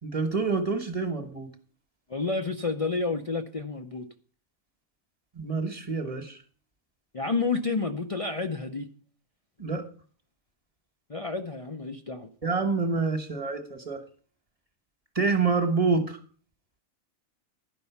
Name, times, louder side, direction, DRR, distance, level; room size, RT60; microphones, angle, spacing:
voice 1, 0.0-1.5 5.3-6.4 9.6-9.9 12.4-14.0 15.1-16.2, right 4 dB, 30° right, 8 dB, 1.2 m, -27 dB
voice 2, 2.1-4.1 7.1-8.9 11.1-12.3, left 4 dB, 45° left, 6 dB, 0.4 m, -30 dB
11.5 x 5.4 x 6.9 m, 0.43 s
omnidirectional pair, 1.4 m